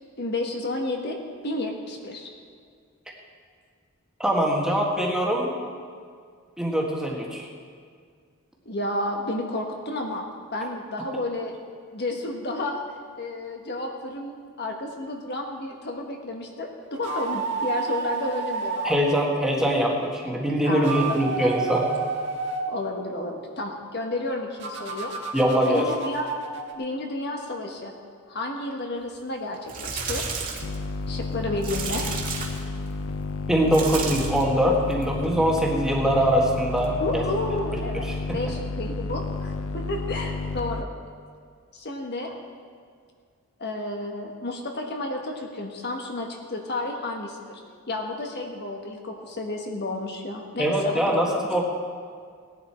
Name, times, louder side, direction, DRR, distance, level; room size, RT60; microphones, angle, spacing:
voice 1, 0.2-1.2 1.4-2.3 8.6-10.2 10.5-11.6 11.9-12.8 13.1-19.0 20.6-21.2 22.7-25.1 25.7-26.3 26.7-27.9 28.3-30.2 31.1-32.0 37.0-38.1 38.3-40.9 41.7-42.3 43.6-47.6 47.9-51.5, left 2 dB, 50° left, 2 dB, 1.4 m, -31 dB
voice 2, 4.2-5.6 6.6-7.5 18.8-21.9 25.3-25.9 33.5-37.2 50.6-51.6, equal, 5° right, -2 dB, 1.6 m, -23 dB
sound 1, 16.9-19.0 20.7-22.7 24.6-26.7, right 4 dB, 55° right, 1.5 m, -30 dB
sound 2, 29.5-30.7 31.6-32.7 33.7-34.5 34.9-35.2 36.8-36.9, right 4 dB, 40° right, 1.8 m, -32 dB
sound 3, 30.6-40.8, left 3 dB, 75° left, 0.7 m, -31 dB
17.5 x 11.0 x 4.4 m, 2.1 s
head